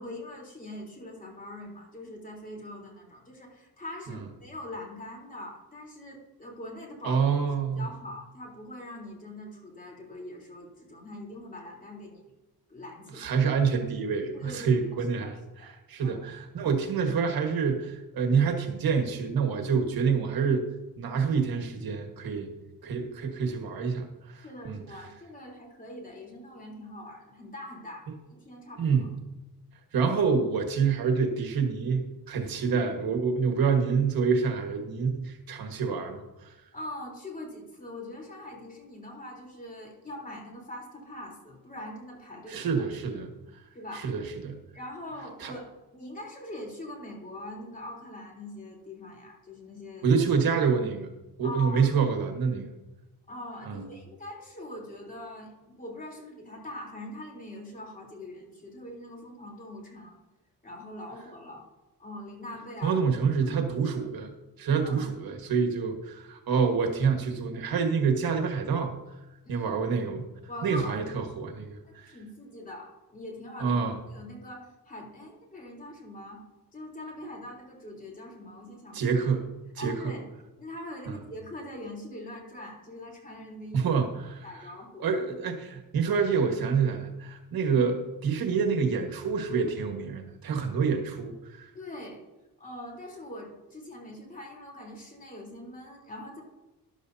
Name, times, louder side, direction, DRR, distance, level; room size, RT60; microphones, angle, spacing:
voice 1, 0.0-7.2 7.8-12.3 12.7-13.3 14.3-16.3 24.3-29.1 33.5-33.6 36.7-42.9 43.7-44.1 44.7-50.1 51.4-51.9 53.3-60.2 60.6-61.6 62.0-63.0 63.4-63.7 64.7-65.0 69.4-69.7 70.5-71.2 71.8-73.8 74.1-76.4 76.7-79.0 79.8-80.3 80.6-83.9 84.4-85.1 91.7-92.2 92.6-96.4, left 1 dB, 20° left, -1 dB, 3.7 m, -42 dB
voice 2, 7.0-7.8 13.2-15.3 15.6-20.6 21.0-22.5 22.8-24.8 28.8-29.1 29.9-36.2 42.5-43.3 43.9-44.6 45.4-45.5 50.0-51.1 51.4-52.7 53.7-53.8 62.8-64.3 64.6-68.9 69.5-70.3 70.6-72.1 73.6-74.0 78.9-79.5 79.8-80.1 81.1-81.2 83.7-84.4 85.0-91.7, right 5 dB, 70° right, 3 dB, 1.7 m, -27 dB
13.0 x 11.5 x 2.8 m, 1.0 s
cardioid pair, 105°, 37 cm